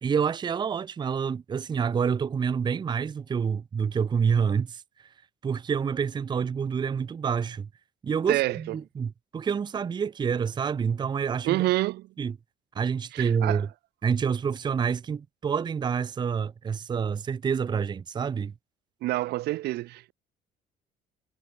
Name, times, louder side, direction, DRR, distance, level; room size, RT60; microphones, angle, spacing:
voice 1, 0.0-4.8 5.4-7.7 8.0-11.6 12.2-12.4 12.8-13.7 14.0-18.5, right 6 dB, 25° right, 0.5 m, -27 dB
voice 2, 8.3-8.7 11.4-12.1 13.1-13.7 19.0-20.1, right 17 dB, 75° right, 0.7 m, -27 dB
cardioid pair, 110°, 17 cm